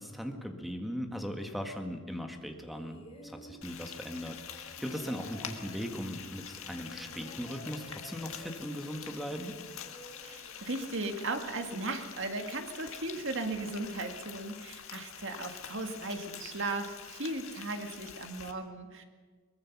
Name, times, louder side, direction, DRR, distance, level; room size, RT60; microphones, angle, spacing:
voice 1, 0.0-9.5, equal, ahead, 4 dB, 1.7 m, -39 dB
sound 1, 2.6-11.0 12.0-12.1, equal, 25° left, 4.1 m, -52 dB
Frying (food), 3.6-18.5, left 8 dB, 70° left, 1.7 m, -46 dB
voice 2, 10.2-19.0, right 2 dB, 60° right, 6 dB, 1.9 m, -37 dB
22.5 x 20.0 x 6.0 m, 1.5 s
head